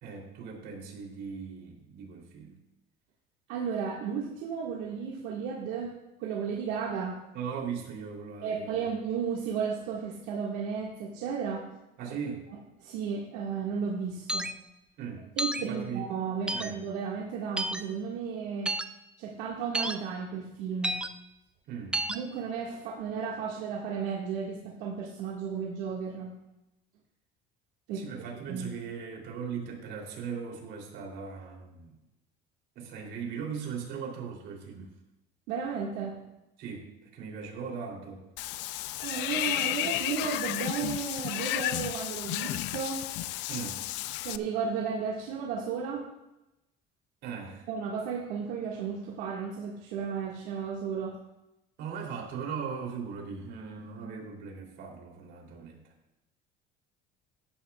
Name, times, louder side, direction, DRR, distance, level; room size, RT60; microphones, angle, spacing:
voice 1, 0.0-2.6 7.3-8.9 12.0-12.5 15.0-15.2 15.6-16.1 16.5-16.8 21.7-22.0 27.9-31.9 32.7-34.9 36.6-38.3 43.5-43.8 47.2-47.7 51.8-55.9, right 6 dB, 60° right, 1 dB, 3.2 m, -39 dB
voice 2, 3.5-5.9 6.2-7.2 8.4-11.6 12.8-14.5 15.4-18.7 19.2-21.0 22.1-26.3 27.9-28.1 28.5-28.7 35.5-36.2 39.0-43.0 44.2-46.0 47.7-51.1, right 6 dB, 85° right, -3 dB, 1.9 m, -34 dB
sound 1, 14.3-14.5 15.4-15.6 16.5-16.7 17.6-17.8 18.7-18.9 19.7-20.0 20.8-21.1 21.9-22.2, right 1 dB, 5° right, 0.4 m, -30 dB
Water / Bathtub (filling or washing), 38.4-44.4, left 15 dB, 65° left, 0.5 m, -32 dB
15.5 x 12.0 x 2.4 m, 0.95 s
cardioid pair, 150°, 20 cm